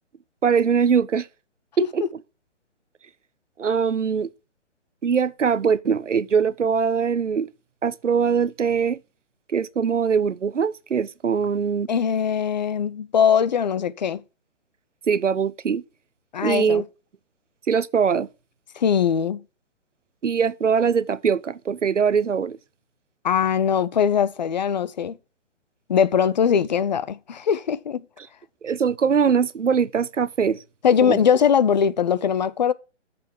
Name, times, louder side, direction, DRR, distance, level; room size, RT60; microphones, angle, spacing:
voice 1, 0.4-1.3 1.8-2.1 3.6-4.3 5.0-7.5 7.8-9.0 9.5-11.9 15.1-15.8 16.4-16.8 17.7-18.3 20.2-22.6 28.6-30.6 31.0-31.2, right 6 dB, 90° right, 0.6 m, -22 dB
voice 2, 11.9-14.2 16.3-16.8 18.8-19.4 23.2-25.2 25.9-28.0 30.8-32.7, left 7 dB, 40° left, 0.5 m, -21 dB
6.8 x 5.6 x 7.2 m
figure-of-eight pair, 135°, 36 cm